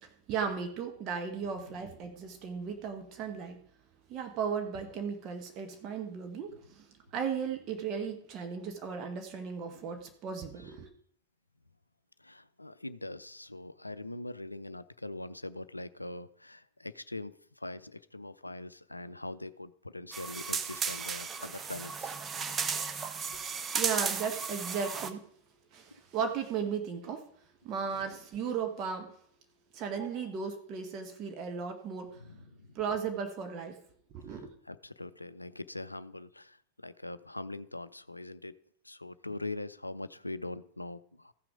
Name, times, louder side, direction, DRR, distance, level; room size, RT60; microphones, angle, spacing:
voice 1, 0.0-3.7 4.1-6.9 7.1-10.9 23.3-23.4 23.7-25.3 25.7-27.2 27.6-29.1 29.7-32.2 32.7-33.8 34.1-34.5, right 6 dB, 35° right, 5 dB, 1.2 m, -36 dB
voice 2, 12.2-22.1 32.2-32.7 34.3-38.6 38.8-41.3, left 2 dB, 85° left, 15 dB, 0.4 m, -42 dB
sound 1, 20.1-25.1, right 6 dB, 20° right, 0.8 m, -34 dB
14.5 x 6.0 x 5.0 m, 0.65 s
figure-of-eight pair, 90°, 0 cm